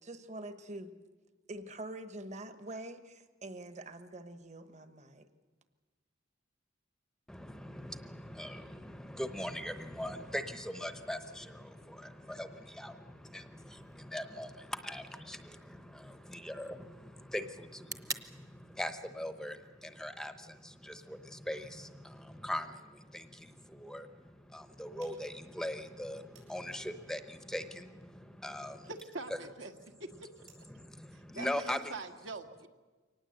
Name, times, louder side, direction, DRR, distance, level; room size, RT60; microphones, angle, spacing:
voice 1, 0.0-0.9 1.5-5.3, right 1 dB, 35° right, 1.2 m, -45 dB
voice 2, 7.3-28.9 30.7-31.9, left 1 dB, 5° left, 0.8 m, -41 dB
sound 1, 13.8-21.8, right 3 dB, 15° right, 0.9 m, -50 dB
sound 2, 25.0-30.8, right 6 dB, 90° right, 7.2 m, -68 dB
voice 3, 28.9-29.7 30.0-30.3 31.1-32.7, right 3 dB, 70° right, 1.7 m, -44 dB
24.0 x 19.0 x 7.9 m
head